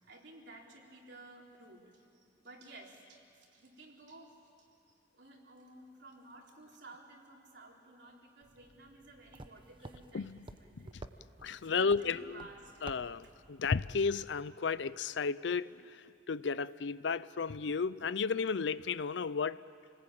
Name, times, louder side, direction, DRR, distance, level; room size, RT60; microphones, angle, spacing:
voice 1, 0.0-2.1 2.4-4.7 5.1-10.3 10.6-11.1 11.6-12.7, right 2 dB, 65° right, 3.9 m, -54 dB
sound 1, 8.4-13.6, right 2 dB, 30° right, 0.9 m, -52 dB
voice 2, 10.1-10.5 10.8-10.9 11.4-12.4 12.8-19.6, left 5 dB, 70° left, 0.5 m, -33 dB
28.5 x 19.5 x 9.0 m
head